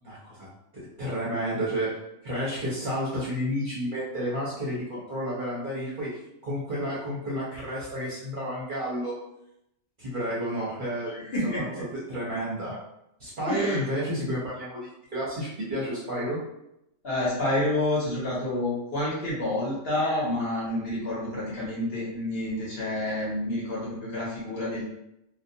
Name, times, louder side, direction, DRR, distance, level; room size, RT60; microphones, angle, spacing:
voice 1, 0.0-0.5 0.7-2.0 2.2-9.1 10.0-11.1 11.4-11.7 12.1-12.8 13.2-16.4, equal, 50° right, -8 dB, 0.7 m, -31 dB
voice 2, 11.1-11.8 13.5-13.8 17.0-24.8, left 1 dB, 55° left, -6 dB, 0.9 m, -29 dB
2.3 x 2.2 x 2.6 m, 0.82 s
omnidirectional pair, 1.4 m